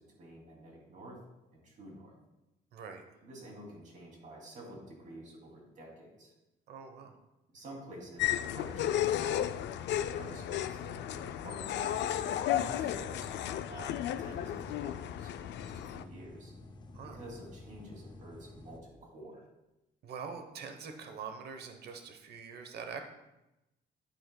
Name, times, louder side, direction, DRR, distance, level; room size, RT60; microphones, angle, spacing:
voice 1, 0.2-1.2 1.5-2.1 3.2-6.3 7.5-9.5 10.0-11.8 12.5-13.4 13.7-16.5 17.1-19.4, right 1 dB, 45° right, -1 dB, 2.6 m, -49 dB
voice 2, 2.7-3.0 6.7-7.2 16.9-17.2 20.0-23.0, right 6 dB, 60° right, 6 dB, 1.0 m, -44 dB
sound 1, 8.2-16.0, left 11 dB, 75° left, 0.4 m, -34 dB
sound 2, 8.6-18.8, left 2 dB, 25° left, 0.6 m, -51 dB
11.0 x 8.9 x 2.2 m, 0.95 s
cardioid pair, 170°, 19 cm